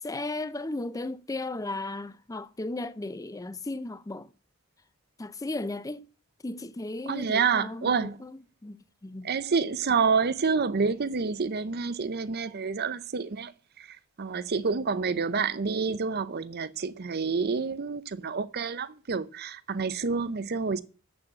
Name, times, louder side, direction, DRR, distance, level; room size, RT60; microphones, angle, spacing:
voice 1, 0.0-4.3 5.2-6.1 6.4-9.3, left 2 dB, 15° left, 0.5 m, -35 dB
voice 2, 7.1-8.2 9.2-13.5 13.8-20.8, right 5 dB, 50° right, 0.6 m, -28 dB
7.8 x 6.2 x 7.7 m
head